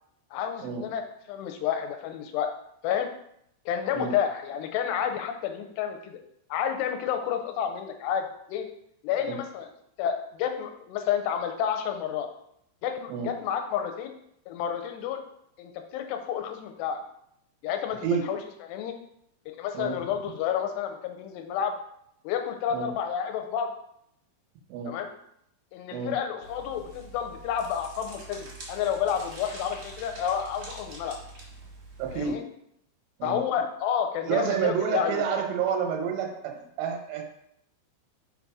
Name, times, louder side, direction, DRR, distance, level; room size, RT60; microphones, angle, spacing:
voice 1, 0.3-1.0 1.3-2.5 2.8-3.1 3.7-6.2 6.5-8.7 9.0-9.7 10.0-12.3 12.8-14.1 14.5-15.2 15.6-17.0 17.6-18.0 18.3-18.4 18.7-18.9 19.5-21.7 22.2-23.7 24.9-25.1 25.7-31.2 32.1-32.4 33.2-35.2, left 8 dB, 80° left, 5 dB, 2.6 m, -30 dB
sound 1, 26.4-32.3, right 2 dB, 50° right, 1.9 m, -45 dB
voice 2, 32.0-32.4 33.2-33.4 34.2-37.2, right 7 dB, 80° right, 2 dB, 3.0 m, -29 dB
5.8 x 4.0 x 4.7 m, 0.74 s
omnidirectional pair, 5.0 m